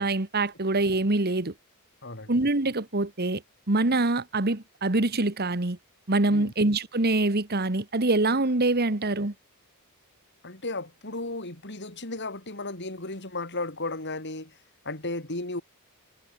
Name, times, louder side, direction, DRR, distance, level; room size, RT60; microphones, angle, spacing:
voice 1, 0.0-1.5 2.3-3.4 3.7-5.8 6.1-9.3, right 2 dB, 45° right, 1.6 m, -25 dB
voice 2, 2.0-2.3 6.3-6.5 10.4-14.5 14.8-15.6, left 2 dB, 50° left, 6.0 m, -34 dB
head